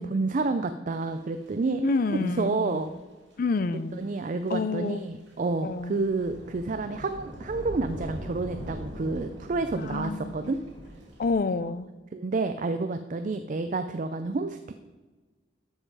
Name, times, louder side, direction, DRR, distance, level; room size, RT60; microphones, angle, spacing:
voice 1, 0.0-2.9 4.0-10.6 11.6-11.7 12.1-14.7, right 3 dB, 45° right, 9 dB, 0.4 m, -29 dB
sound 1, 1.1-1.6 1.9-2.8 3.3-3.4 3.6-3.7 4.0-4.1 4.5-4.9 5.3-11.3, equal, 65° right, 2.6 m, -42 dB
voice 2, 1.8-2.8 3.4-4.0 4.5-5.1 5.6-6.0 9.7-10.6 11.2-11.9, left 3 dB, 50° left, 14 dB, 0.4 m, -28 dB
12.5 x 5.5 x 4.7 m, 1.2 s
head